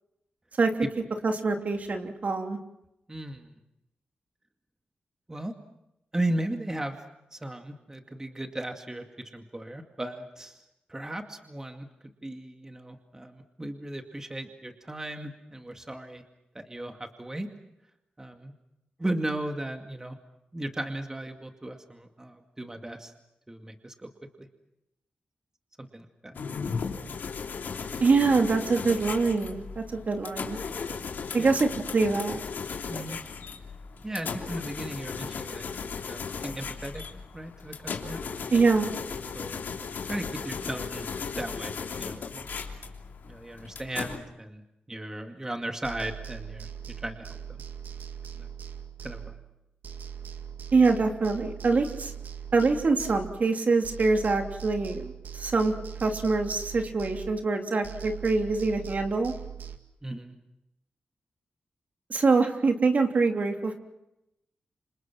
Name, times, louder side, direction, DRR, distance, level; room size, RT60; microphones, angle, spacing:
voice 1, 1.2-2.6 28.0-30.6 31.3-32.4 38.5-38.9 50.7-52.1 52.5-55.7 56.0-59.3 62.1-63.7, right 4 dB, 55° right, 4 dB, 3.1 m, -24 dB
voice 2, 3.1-3.5 5.3-5.5 6.1-7.0 7.3-10.6 10.9-11.9 12.2-16.2 16.5-17.5 18.2-18.5 19.0-20.2 20.5-23.1 23.5-24.1 24.4-24.5 25.8-26.5 31.4-31.5 32.9-33.2 34.0-35.7 36.1-37.0 37.3-38.2 39.3-39.6 40.1-41.1 41.4-42.5 43.3-47.6 48.4-48.5 49.0-49.3 60.0-60.4, right 1 dB, 20° right, 5 dB, 2.2 m, -36 dB
sound 1, 26.4-44.2, left 5 dB, 80° left, 3.2 m, -36 dB
sound 2, 45.8-49.6 49.8-53.6 53.8-57.6 57.8-59.8, right 8 dB, 80° right, 2.0 m, -41 dB
28.5 x 26.5 x 6.1 m, 0.86 s
cardioid pair, 75°, 3 cm